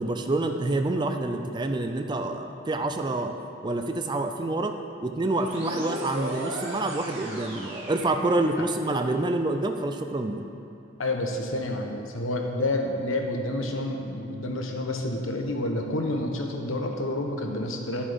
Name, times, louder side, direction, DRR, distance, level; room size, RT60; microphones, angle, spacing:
voice 1, 0.0-3.3 3.6-10.5, right 2 dB, 20° right, 6 dB, 0.4 m, -27 dB
sound 1, 5.4-8.9, right 1 dB, 65° right, 2.4 m, -36 dB
voice 2, 11.0-18.0, left 1 dB, 85° left, 2 dB, 1.2 m, -29 dB
11.0 x 7.2 x 5.2 m, 2.7 s
head